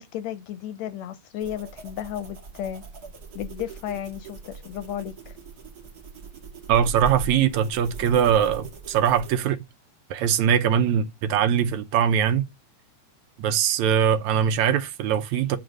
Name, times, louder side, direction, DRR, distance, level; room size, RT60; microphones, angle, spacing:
voice 1, 0.0-2.8 3.4-5.4, left 10 dB, 75° left, 1.7 m, -34 dB
sound 1, 1.4-9.4, right 4 dB, 45° right, 1.5 m, -40 dB
voice 2, 6.7-9.6 10.1-12.4 13.4-15.6, right 8 dB, 75° right, 2.0 m, -22 dB
9.6 x 3.9 x 6.2 m
omnidirectional pair, 3.5 m